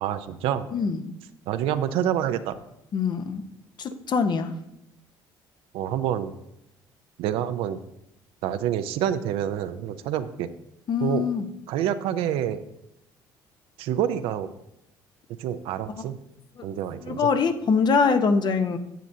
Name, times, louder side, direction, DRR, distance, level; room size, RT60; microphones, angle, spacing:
voice 1, 0.0-0.7 1.5-2.6 5.7-6.4 7.2-7.8 8.4-10.5 11.0-11.3 11.7-12.6 13.8-14.5 15.4-16.2 16.6-17.3, right 10 dB, 75° right, 10 dB, 0.5 m, -27 dB
voice 2, 0.7-1.1 2.9-3.4 3.8-4.5 10.9-11.4 17.1-18.8, left 5 dB, 50° left, 8 dB, 0.9 m, -23 dB
10.5 x 7.8 x 2.7 m, 0.84 s
supercardioid pair, 75°, 9 cm